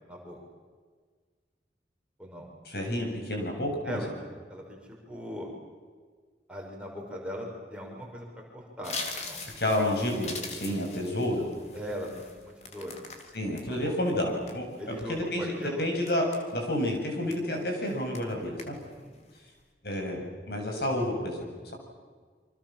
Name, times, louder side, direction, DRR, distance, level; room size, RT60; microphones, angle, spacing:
voice 1, 0.1-0.4 2.2-2.5 3.8-4.1 4.5-5.5 6.5-8.3 8.5-9.4 11.7-13.0 13.7-14.0 14.8-15.8 19.0-19.2, equal, 5° right, -1 dB, 6.2 m, -40 dB
voice 2, 2.7-4.0 9.6-11.4 13.3-15.5 15.8-18.8 19.8-21.7, left 1 dB, 65° left, 2 dB, 7.7 m, -30 dB
sound 1, 8.8-13.6 14.1-14.9 15.4-15.6 16.1-16.8 17.3-17.6 17.9-18.3 18.6-19.0 19.4-19.6, left 3 dB, 40° left, 3.8 m, -41 dB
28.5 x 26.0 x 7.6 m, 1.5 s
head